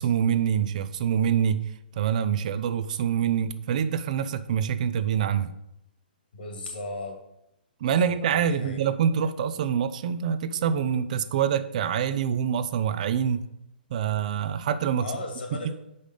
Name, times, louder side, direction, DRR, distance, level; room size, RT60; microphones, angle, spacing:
voice 1, 0.0-1.6 1.9-5.5 7.8-13.4 13.9-15.1 15.5-15.7, right 8 dB, 45° right, 13 dB, 0.4 m, -25 dB
voice 2, 6.3-7.2 7.8-8.8 15.0-15.7, left 2 dB, 75° left, 2 dB, 2.1 m, -37 dB
5.4 x 5.1 x 4.9 m, 0.83 s
hypercardioid pair, 155°, 5 cm